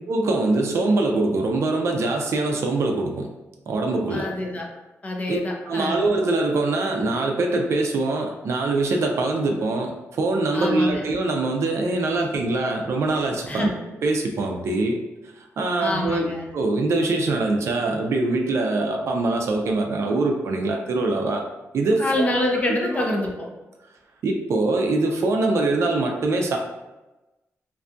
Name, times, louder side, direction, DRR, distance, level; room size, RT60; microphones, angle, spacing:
voice 1, 0.1-3.3 3.7-4.3 5.3-5.4 5.7-13.7 14.0-15.0 15.6-21.4 21.7-22.3 22.7-23.1 24.2-26.6, right 2 dB, 65° right, 2 dB, 0.4 m, -23 dB
voice 2, 4.1-4.7 5.0-6.1 10.5-11.1 13.5-13.7 15.8-16.5 22.0-23.5, left 1 dB, 30° left, 1 dB, 0.5 m, -26 dB
2.6 x 2.2 x 2.5 m, 1.0 s
wide cardioid pair, 115°, 5 cm